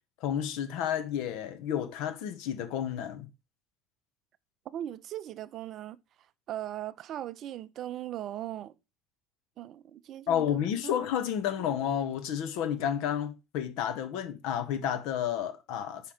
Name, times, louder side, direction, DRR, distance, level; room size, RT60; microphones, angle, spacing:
voice 1, 0.2-3.3 10.3-16.1, left 9 dB, 60° left, 0.9 m, -31 dB
voice 2, 4.7-6.0 6.5-8.7 9.6-10.9 11.6-11.8, right 12 dB, 50° right, 0.4 m, -39 dB
5.1 x 4.7 x 4.9 m
figure-of-eight pair, 65°, 0 cm